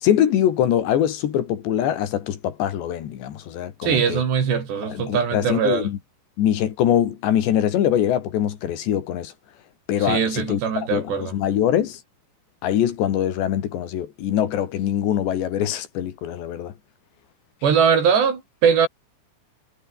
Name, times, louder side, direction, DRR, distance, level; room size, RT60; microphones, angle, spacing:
voice 1, 0.0-4.2 4.8-6.0 6.4-9.3 9.9-10.6 10.9-12.0 12.6-16.7, left 10 dB, 75° left, 4.4 m, -23 dB
voice 2, 3.8-5.9 10.0-11.3 17.6-18.9, right 7 dB, 70° right, 6.4 m, -21 dB
omnidirectional pair, 5.2 m